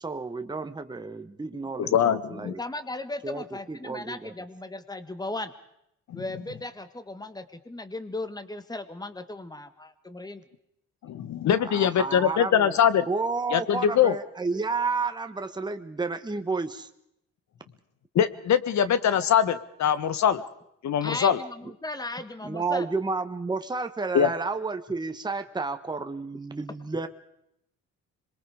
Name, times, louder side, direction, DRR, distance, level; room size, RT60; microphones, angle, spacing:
voice 1, 0.0-2.6 3.2-4.3 11.5-12.8 13.1-16.9 22.4-27.1, right 4 dB, 15° right, 7 dB, 1.3 m, -31 dB
voice 2, 1.8-2.5 6.1-6.2 11.0-13.1 13.5-14.1 18.1-20.4 20.8-21.4 24.1-24.3, left 9 dB, 65° left, 14 dB, 1.4 m, -23 dB
voice 3, 2.4-5.5 6.1-10.4 21.0-22.9, left 2 dB, 15° left, 11 dB, 1.7 m, -36 dB
26.5 x 22.0 x 5.0 m, 0.78 s
cardioid pair, 90°, 30 cm